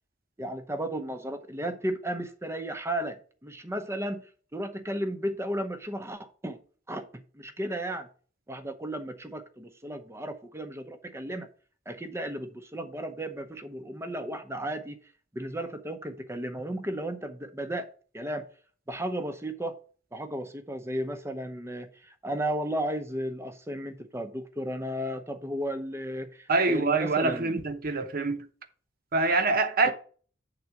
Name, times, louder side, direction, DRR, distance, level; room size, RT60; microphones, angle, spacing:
voice 1, 0.4-4.3 4.5-6.6 6.9-8.1 8.5-11.5 11.9-15.0 15.3-18.5 18.9-19.8 20.1-27.6 29.8-29.9, right 1 dB, 15° right, 0.8 m, -34 dB
voice 2, 26.5-28.5 29.1-29.9, right 3 dB, 50° right, 0.9 m, -25 dB
8.4 x 3.9 x 5.8 m
head